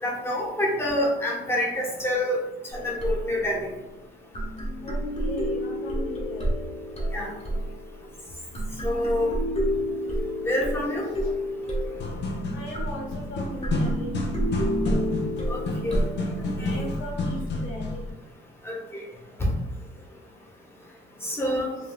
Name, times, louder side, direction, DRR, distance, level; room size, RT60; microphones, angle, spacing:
voice 1, 0.0-2.4 2.7-3.7 7.1-7.3 8.8-9.3 10.4-11.1 15.5-15.6 15.8-15.9 16.6-16.9 18.6-19.0 19.4-19.5 21.2-21.7, left 1 dB, 10° left, -3 dB, 1.0 m, -27 dB
sound 1, 2.7-3.5 4.3-8.2 8.5-16.8, equal, 35° left, 1.0 m, -30 dB
voice 2, 4.8-6.4 8.5-8.9 11.2-11.3 12.1-12.2 12.5-14.2 15.3-16.0 16.2-16.3 16.6-18.1, equal, 80° left, -2 dB, 1.0 m, -39 dB
sound 2, 11.8-18.1, left 1 dB, 60° left, 0.5 m, -30 dB
3.8 x 2.2 x 2.2 m, 1.0 s
cardioid pair, 90°, 20 cm